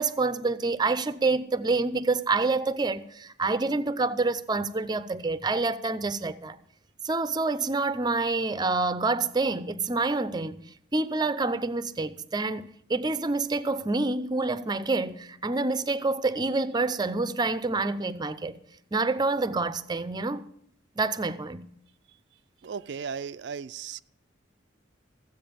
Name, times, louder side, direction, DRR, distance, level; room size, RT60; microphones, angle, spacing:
voice 1, 0.0-6.6 7.0-10.6 10.9-18.6 18.9-20.4 21.0-21.7, right 3 dB, 25° right, 0.6 m, -27 dB
voice 2, 22.6-24.0, right 6 dB, 65° right, 0.4 m, -36 dB
15.0 x 8.1 x 6.9 m
head